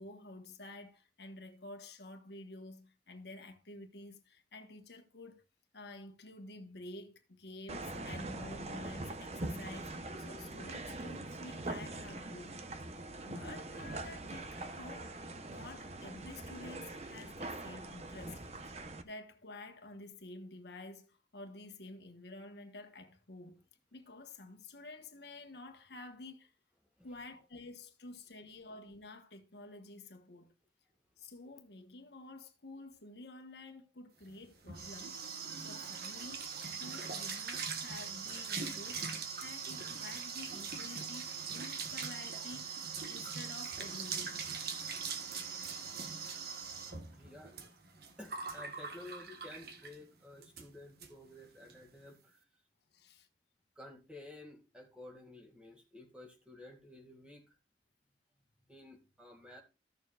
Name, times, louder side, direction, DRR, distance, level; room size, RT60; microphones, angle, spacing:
voice 1, 0.0-5.4 5.7-12.6 13.2-23.6 23.9-26.5 27.0-30.5 31.2-35.2 35.6-36.5 36.8-44.5 52.9-53.3, left 2 dB, 75° left, 1.3 m, -50 dB
sound 1, 7.7-19.0, right 2 dB, 35° right, 0.9 m, -43 dB
sound 2, 34.3-50.0 50.4-50.7 51.0-51.1 51.4-51.8, right 5 dB, 60° right, 1.4 m, -41 dB
voice 2, 47.1-47.5 48.2-52.5 53.8-57.6 58.7-59.6, left 2 dB, 5° right, 2.1 m, -52 dB
14.5 x 6.8 x 2.4 m
head